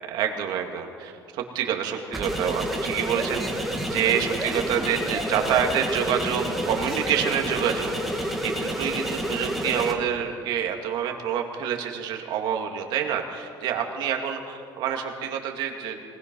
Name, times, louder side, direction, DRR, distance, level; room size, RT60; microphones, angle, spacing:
voice 1, 0.1-16.1, right 8 dB, 65° right, 3 dB, 2.5 m, -27 dB
sound 1, 2.1-9.9, equal, ahead, 2.1 m, -29 dB
24.0 x 20.0 x 5.5 m, 2.3 s
cardioid pair, 160°, 8 cm